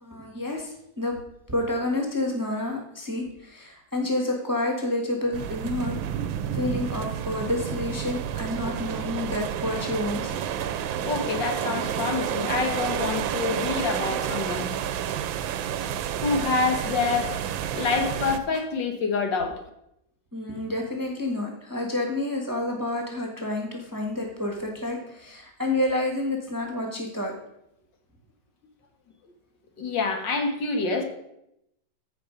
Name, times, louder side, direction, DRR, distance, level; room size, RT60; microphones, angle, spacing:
voice 1, 0.0-1.1 1.5-5.9 6.5-10.4 20.3-27.3, left 1 dB, 10° right, 1 dB, 1.2 m, -29 dB
sound 1, 5.3-18.4, right 9 dB, 80° right, 1.4 m, -30 dB
voice 2, 11.0-14.7 16.2-17.3 17.7-19.5 29.8-31.0, left 4 dB, 65° left, 5 dB, 1.9 m, -27 dB
14.5 x 5.0 x 5.2 m, 0.80 s
omnidirectional pair, 2.1 m